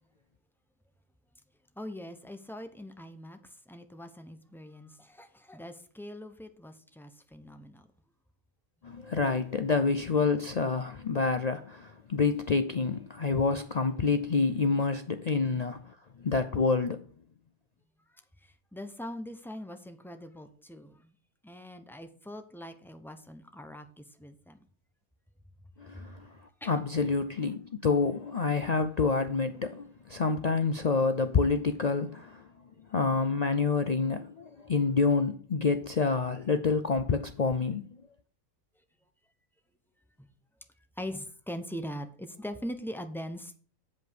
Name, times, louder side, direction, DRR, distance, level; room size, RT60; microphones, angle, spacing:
voice 1, 1.8-7.8 15.5-15.6 18.1-21.1 21.4-24.6 25.9-26.1 26.6-26.9 40.2-40.3 41.0-43.6, equal, ahead, 0.7 m, -42 dB
voice 2, 8.8-17.0 25.8-26.3 26.7-32.5 32.9-37.9, left 4 dB, 65° left, 0.4 m, -28 dB
7.8 x 5.4 x 6.7 m
omnidirectional pair, 1.4 m